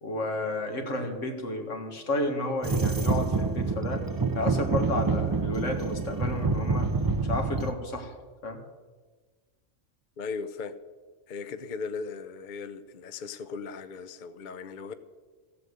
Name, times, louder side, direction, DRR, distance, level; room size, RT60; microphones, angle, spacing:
voice 1, 0.0-4.1 4.3-6.9 7.2-8.1 8.4-8.6, left 2 dB, 80° left, 2.1 m, -32 dB
sound 1, 2.6-7.7, right 4 dB, 30° right, 0.4 m, -27 dB
voice 2, 10.2-10.8 11.3-14.9, left 5 dB, 50° left, 0.7 m, -37 dB
15.0 x 8.3 x 7.9 m
omnidirectional pair, 1.3 m